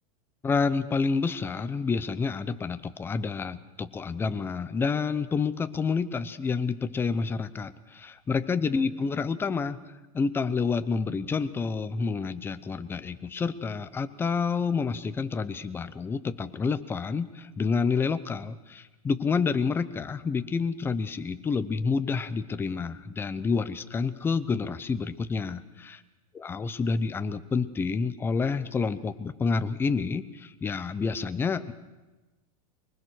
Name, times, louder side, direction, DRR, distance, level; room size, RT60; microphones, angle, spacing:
voice 1, 0.4-9.8 10.1-26.0 26.3-31.7, left 5 dB, 10° left, 11 dB, 0.7 m, -29 dB
22.5 x 20.0 x 6.4 m, 1.2 s
supercardioid pair, 155°, 20 cm